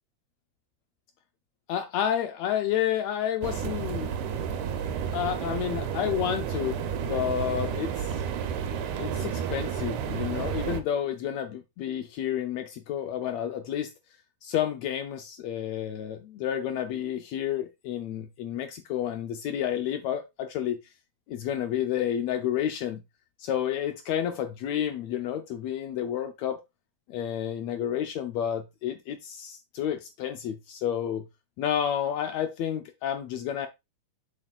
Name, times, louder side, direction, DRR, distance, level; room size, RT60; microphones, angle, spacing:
voice 1, 1.7-4.6 5.1-8.3 9.0-13.9 14.4-20.8 21.3-23.0 23.4-26.6 27.1-31.2 31.6-33.7, left 10 dB, 80° left, 1.6 m, -30 dB
sound 1, 3.4-10.8, right 8 dB, 75° right, 2.1 m, -31 dB
7.3 x 6.6 x 2.4 m
omnidirectional pair, 3.8 m